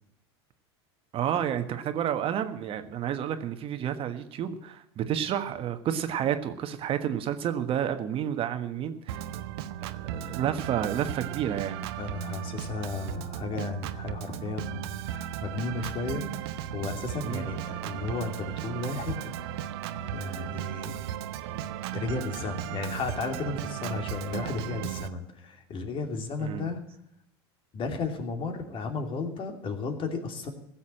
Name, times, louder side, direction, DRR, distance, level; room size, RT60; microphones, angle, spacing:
voice 1, 1.1-9.2 9.8-11.9 17.2-17.5 26.4-26.7, right 9 dB, 40° right, 8 dB, 1.4 m, -30 dB
Organ, 9.1-25.1, right 11 dB, 70° right, 0.9 m, -36 dB
voice 2, 12.0-19.3 20.1-20.9 21.9-26.8 27.7-30.5, left 4 dB, 40° left, 5 dB, 2.9 m, -34 dB
15.5 x 7.3 x 8.8 m, 0.78 s
hypercardioid pair, 90°, 14 cm